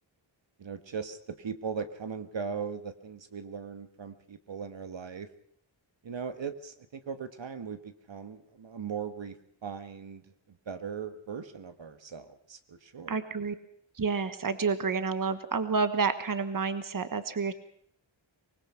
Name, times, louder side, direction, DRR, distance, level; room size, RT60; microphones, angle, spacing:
voice 1, 0.6-5.3 6.0-10.2 10.7-13.2, right 6 dB, 70° right, 9 dB, 1.5 m, -39 dB
voice 2, 13.1-13.5 14.0-17.5, right 5 dB, 45° right, 11 dB, 1.4 m, -29 dB
25.0 x 20.0 x 5.7 m, 0.63 s
wide cardioid pair, 120°, 47 cm